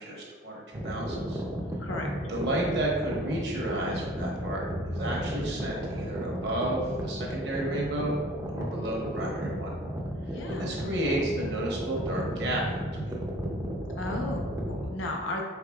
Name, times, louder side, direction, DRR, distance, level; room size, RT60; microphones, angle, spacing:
voice 1, 0.0-1.4 2.3-8.2 8.5-9.7 10.5-13.2, right 1 dB, 60° right, -3 dB, 1.0 m, -32 dB
sound 1, 0.7-14.8, equal, 15° right, 0.4 m, -34 dB
voice 2, 1.8-2.1 10.3-10.7 14.0-15.4, left 2 dB, 80° left, 0 dB, 0.7 m, -34 dB
4.7 x 3.9 x 2.3 m, 1.5 s
head